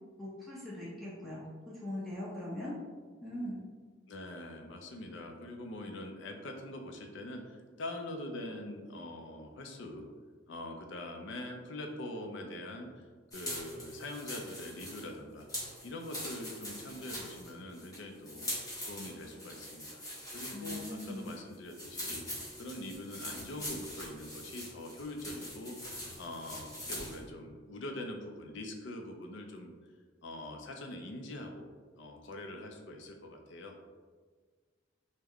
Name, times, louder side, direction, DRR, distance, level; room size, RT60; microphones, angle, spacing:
voice 1, 0.2-1.4 1.8-2.7 3.2-3.6 20.5-21.3, left 1 dB, ahead, -8 dB, 0.7 m, -40 dB
voice 2, 4.1-10.1 10.5-13.1 13.3-18.5 18.9-20.0 20.3-22.2 22.6-29.7 30.2-31.7 32.0-33.8, left 1 dB, 70° left, 4 dB, 0.5 m, -43 dB
sound 1, 13.3-27.2, left 1 dB, 20° left, 1.1 m, -43 dB
3.5 x 2.1 x 3.4 m, 1.5 s
head